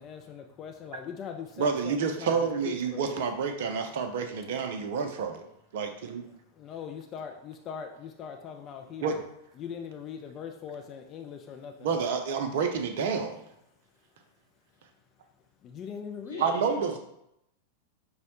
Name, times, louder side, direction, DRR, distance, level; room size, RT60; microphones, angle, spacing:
voice 1, 0.0-3.2 6.5-9.2 9.6-12.1 15.6-16.5, left 7 dB, 30° left, 4 dB, 0.3 m, -41 dB
voice 2, 1.6-5.4 5.7-6.2 9.0-9.2 11.8-13.4 16.4-17.0, right 5 dB, 55° right, 6 dB, 0.4 m, -29 dB
voice 3, 16.3-17.0, equal, 80° left, -2 dB, 0.9 m, -42 dB
5.4 x 2.1 x 2.8 m, 0.81 s
figure-of-eight pair, 90°, 0 cm